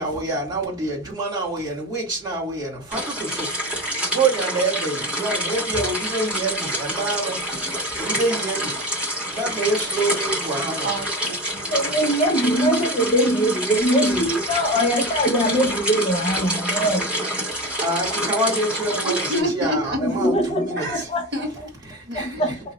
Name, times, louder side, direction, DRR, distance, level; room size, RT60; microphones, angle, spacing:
voice 1, 0.0-8.8 9.3-10.9 17.2-17.3 17.6-21.1 21.9-22.5, right 2 dB, 25° right, 1.7 m, -27 dB
sound 1, 2.9-19.4, equal, 5° right, 1.4 m, -27 dB
voice 2, 10.8-11.7 19.0-20.2 20.8-21.0 21.3-21.7 22.0-22.6, right 1 dB, 65° right, 1.6 m, -28 dB
voice 3, 11.6-17.2 20.0-21.2 22.1-22.5, equal, 35° left, 0.7 m, -22 dB
2.9 x 2.4 x 3.9 m
head